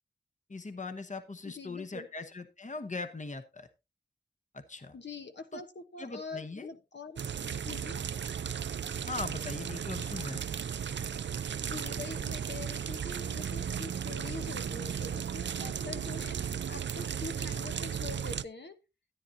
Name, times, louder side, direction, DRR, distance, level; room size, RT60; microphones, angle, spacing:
voice 1, 0.5-3.7 4.5-4.9 5.5-5.6 6.0-6.7 9.1-10.4, left 3 dB, 40° left, 8 dB, 1.1 m, -40 dB
voice 2, 1.4-2.1 4.9-7.2 7.6-8.0 11.6-18.8, left 4 dB, 70° left, 6 dB, 1.2 m, -44 dB
sound 1, 7.2-18.4, right 8 dB, 80° right, 0.4 m, -35 dB
13.5 x 9.6 x 2.8 m, 0.26 s
wide cardioid pair, 60°, 19 cm